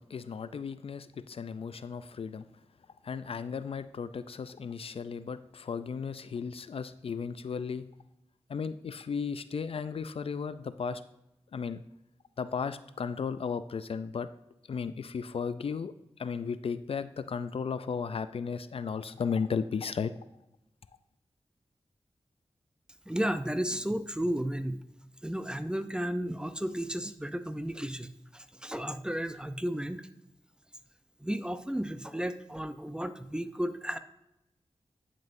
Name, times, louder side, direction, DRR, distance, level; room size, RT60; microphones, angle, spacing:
voice 1, 0.0-2.5 3.0-7.9 8.5-11.0 11.5-11.8 12.4-14.3 14.7-15.9 16.2-20.1, left 6 dB, 65° left, 13 dB, 0.4 m, -35 dB
voice 2, 23.1-24.8 25.2-30.1 31.2-34.0, equal, 10° right, 11 dB, 0.5 m, -33 dB
10.5 x 5.5 x 2.6 m, 0.87 s
cardioid pair, 45°, 11 cm